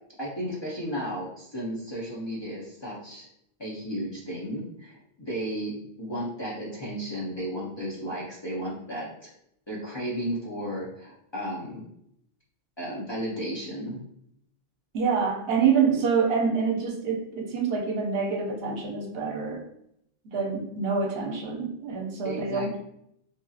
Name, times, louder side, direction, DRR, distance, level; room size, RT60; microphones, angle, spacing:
voice 1, 0.2-3.3 3.6-9.3 9.7-11.9 12.8-14.0 22.2-22.8, equal, 35° left, -6 dB, 0.5 m, -34 dB
voice 2, 14.9-19.6 20.2-22.7, right 5 dB, 75° right, 1 dB, 0.8 m, -26 dB
2.9 x 2.6 x 2.3 m, 0.74 s
omnidirectional pair, 1.0 m